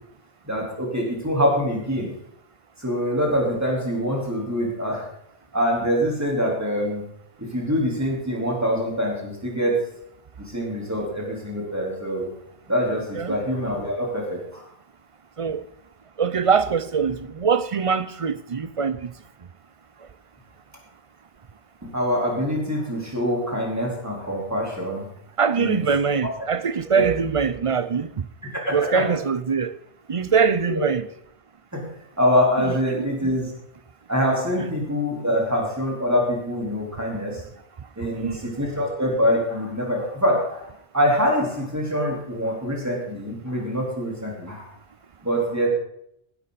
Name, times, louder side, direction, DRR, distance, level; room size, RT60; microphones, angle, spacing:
voice 1, 0.4-2.1 2.8-5.1 5.5-7.0 7.4-9.9 10.4-12.3 12.7-14.6 21.8-25.1 25.6-25.8 26.2-26.3 26.9-27.1 28.5-29.1 30.7-30.9 31.7-31.8 32.2-33.5 34.1-37.4 38.0-40.7 40.9-44.7 45.2-45.7, equal, 15° right, 4.0 m, -24 dB
voice 2, 16.2-19.1 20.0-20.1 25.4-28.2 28.7-29.7 30.1-31.1 33.0-33.1 37.8-37.9 38.1-38.6, right 6 dB, 40° right, 0.5 m, -23 dB
16.0 x 12.0 x 4.1 m
omnidirectional pair, 1.1 m